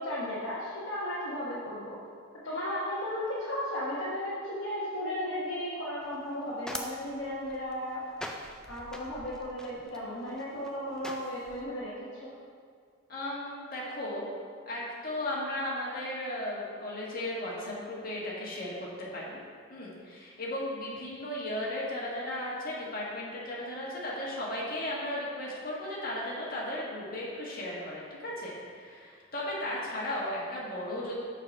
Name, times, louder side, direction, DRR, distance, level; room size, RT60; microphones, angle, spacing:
voice 1, 0.0-2.0 2.4-8.0 8.7-11.9 12.2-12.3, left 1 dB, 60° left, -8 dB, 1.1 m, -35 dB
sound 1, 6.0-11.6, left 1 dB, 5° left, 0.3 m, -44 dB
voice 2, 13.1-14.3 14.7-19.4 19.7-31.2, left 1 dB, 45° left, -5 dB, 1.6 m, -35 dB
6.6 x 4.9 x 4.6 m, 2.1 s
head